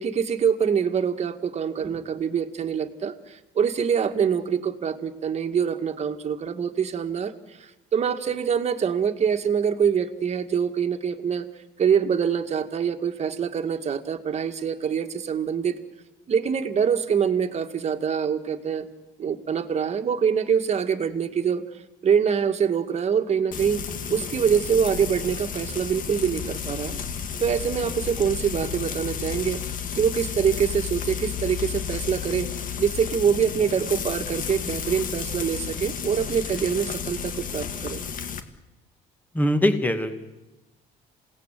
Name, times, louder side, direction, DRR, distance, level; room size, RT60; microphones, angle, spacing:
voice 1, 0.0-11.5 11.8-15.8 16.3-18.9 19.2-21.6 22.0-23.8 24.1-27.0 27.4-29.6 30.0-32.5 32.8-38.0, right 7 dB, 40° right, 6 dB, 2.0 m, -25 dB
Frying (food), 23.5-38.4, left 7 dB, 55° left, 1.9 m, -32 dB
voice 2, 39.3-40.2, left 1 dB, 10° left, 7 dB, 2.4 m, -22 dB
27.5 x 18.0 x 9.2 m, 1.1 s
cardioid pair, 110°, 17 cm